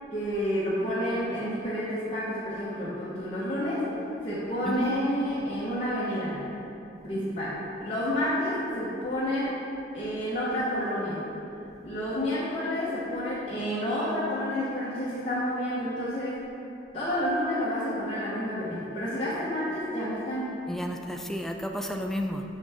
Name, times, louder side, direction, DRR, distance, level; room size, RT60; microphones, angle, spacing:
voice 1, 0.1-3.8 4.2-6.4 7.0-7.5 7.8-9.6 9.9-11.2 11.8-16.4 16.9-20.5, equal, 30° left, -11 dB, 1.1 m, -29 dB
voice 2, 20.7-22.4, equal, ahead, 2 dB, 0.3 m, -31 dB
6.6 x 6.2 x 3.6 m, 2.7 s
head